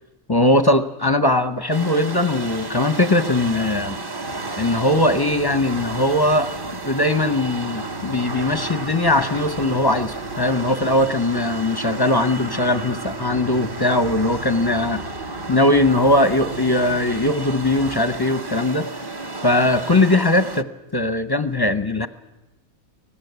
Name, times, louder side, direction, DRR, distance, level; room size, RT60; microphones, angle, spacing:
voice 1, 0.3-4.0 4.6-6.5 6.8-15.0 15.5-18.9 19.4-20.7 20.9-22.1, left 1 dB, 25° left, 11 dB, 0.6 m, -20 dB
sound 1, 1.7-20.6, right 3 dB, 25° right, 0.6 m, -32 dB
sound 2, 4.2-18.0, left 1 dB, 65° right, 8.4 m, -41 dB
24.0 x 19.0 x 8.1 m, 0.97 s
omnidirectional pair, 1.6 m